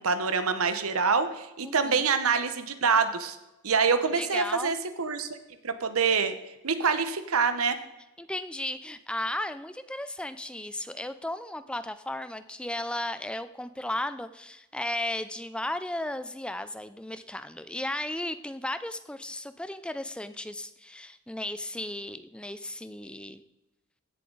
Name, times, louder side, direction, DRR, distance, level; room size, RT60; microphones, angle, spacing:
voice 1, 0.0-3.4 3.6-5.3 5.6-6.3 6.6-7.8, right 5 dB, 90° right, 10 dB, 1.0 m, -25 dB
voice 2, 1.6-2.1 4.1-4.8 8.2-23.4, left 1 dB, 5° left, 12 dB, 0.4 m, -35 dB
16.0 x 7.3 x 4.0 m, 0.99 s
head